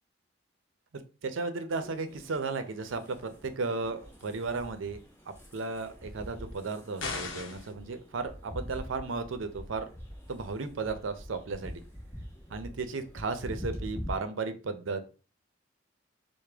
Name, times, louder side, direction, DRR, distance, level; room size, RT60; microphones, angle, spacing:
voice 1, 1.2-5.0 5.5-9.9 10.3-11.8 12.5-15.0, right 3 dB, 85° right, 9 dB, 0.6 m, -34 dB
sound 1, 1.7-14.1, equal, 10° left, 1.0 m, -45 dB
sound 2, 7.0-7.7, left 4 dB, 75° left, 0.7 m, -36 dB
4.8 x 2.1 x 3.4 m, 0.35 s
head